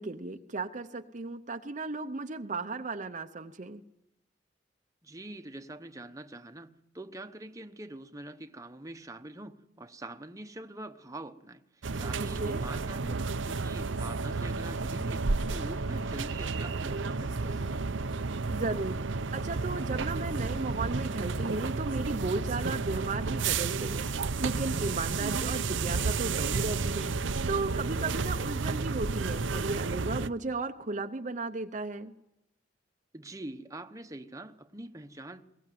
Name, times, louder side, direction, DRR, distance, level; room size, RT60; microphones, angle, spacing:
voice 1, 0.0-3.8 12.2-12.7 18.5-19.0 19.3-24.1 24.4-32.1, right 3 dB, 40° right, 0.7 m, -35 dB
voice 2, 5.0-13.2 13.4-17.8 33.1-35.4, right 2 dB, 20° right, 1.0 m, -44 dB
sound 1, 11.8-30.3, right 4 dB, 85° right, 0.8 m, -32 dB
22.0 x 18.5 x 9.3 m
head